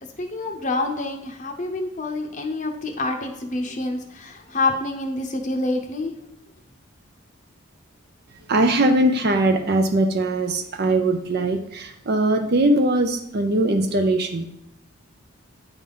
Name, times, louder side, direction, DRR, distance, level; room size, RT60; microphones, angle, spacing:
voice 1, 0.2-6.1, left 2 dB, 35° left, 3 dB, 0.8 m, -27 dB
voice 2, 8.5-14.5, right 1 dB, 50° right, 6 dB, 0.6 m, -21 dB
8.7 x 3.5 x 5.4 m, 0.80 s
head